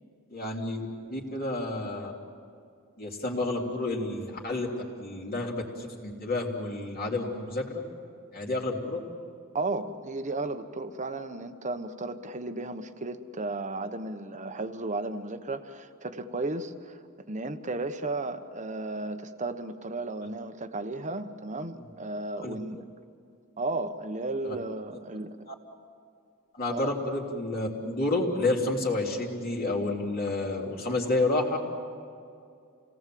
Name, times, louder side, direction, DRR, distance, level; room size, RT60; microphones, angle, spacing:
voice 1, 0.3-2.1 3.0-4.7 5.0-7.8 8.3-9.0 22.4-22.5 24.4-24.5 25.5-25.6 26.5-31.6, left 2 dB, 45° left, -1 dB, 3.2 m, -30 dB
voice 2, 9.5-17.0 17.3-22.8 23.6-25.5 26.7-26.9, right 2 dB, 35° right, 9 dB, 1.2 m, -34 dB
29.0 x 18.5 x 7.7 m, 2.4 s
head